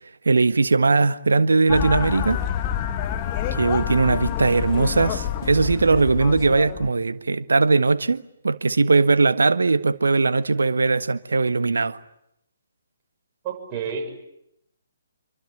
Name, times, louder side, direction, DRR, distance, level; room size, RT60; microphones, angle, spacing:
voice 1, 0.2-2.4 3.6-12.0, right 3 dB, 70° right, 1.5 m, -20 dB
sound 1, 1.7-6.9, left 10 dB, 25° left, 1.8 m, -27 dB
voice 2, 13.4-14.1, right 6 dB, 25° right, 6.8 m, -29 dB
28.0 x 24.0 x 8.7 m
figure-of-eight pair, 135°, 0 cm